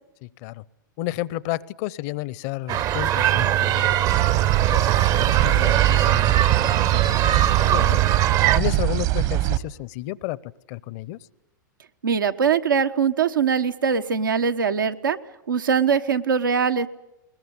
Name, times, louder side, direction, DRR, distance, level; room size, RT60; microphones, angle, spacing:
voice 1, 0.2-0.6 1.0-8.0 8.6-11.2, left 16 dB, 50° left, 22 dB, 0.8 m, -32 dB
sound 1, 2.7-8.6, right 11 dB, 35° right, 0.8 m, -21 dB
sound 2, 4.1-9.6, right 15 dB, 55° right, 1.4 m, -22 dB
voice 2, 12.0-15.2 15.5-16.9, right 6 dB, 85° right, 7 dB, 1.3 m, -22 dB
21.5 x 20.0 x 9.8 m, 0.91 s
hypercardioid pair, 100°, 11 cm